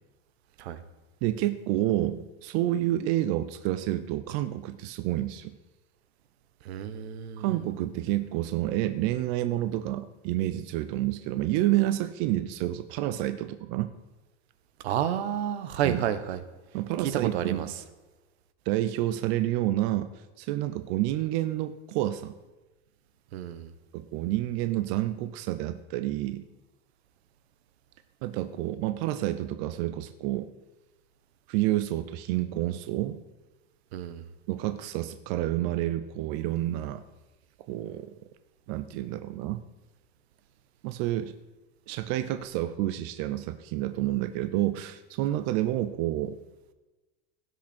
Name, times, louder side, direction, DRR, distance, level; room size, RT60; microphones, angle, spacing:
voice 1, 1.2-5.6 7.4-13.9 15.8-16.0 16.7-17.7 18.7-20.1 20.4-22.3 23.9-26.4 28.2-30.5 31.5-33.2 34.5-37.0 37.7-38.1 38.7-39.6 40.8-41.3 41.9-46.4, right 14 dB, 40° right, 10 dB, 0.6 m, -29 dB
voice 2, 6.6-7.5 14.8-16.4 17.0-17.7 23.3-23.7 33.9-34.2, right 10 dB, 75° right, 12 dB, 1.1 m, -30 dB
17.0 x 6.1 x 4.4 m, 1.2 s
supercardioid pair, 155°, 32 cm